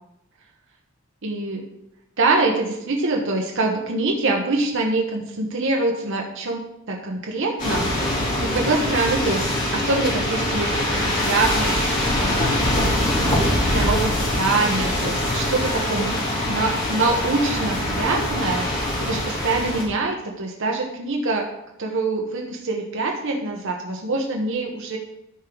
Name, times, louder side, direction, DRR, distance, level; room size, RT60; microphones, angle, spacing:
voice 1, 1.2-1.6 2.2-12.6 13.0-13.4 13.7-16.2 16.5-18.7 19.0-21.5 21.8-25.0, right 3 dB, 60° right, 0 dB, 1.1 m, -25 dB
sound 1, 7.6-19.8, left 1 dB, 40° left, 2.8 m, -23 dB
12.5 x 4.5 x 3.9 m, 0.81 s
head